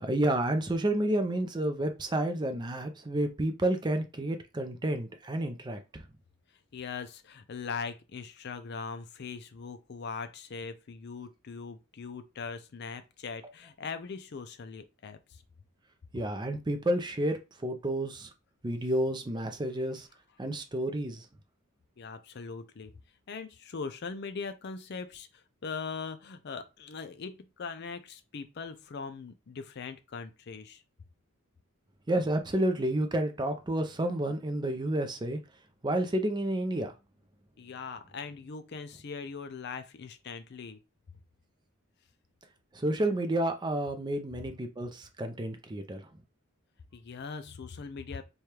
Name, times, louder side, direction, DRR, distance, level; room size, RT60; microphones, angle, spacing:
voice 1, 0.0-6.0 16.1-18.3 18.6-20.1 20.4-21.3 32.1-35.4 35.8-36.9 42.7-46.0, right 1 dB, 20° right, 0.5 m, -30 dB
voice 2, 6.7-15.4 22.0-23.0 23.3-30.8 37.6-40.8 46.9-48.2, left 5 dB, 50° left, 0.4 m, -40 dB
3.3 x 2.3 x 4.4 m
head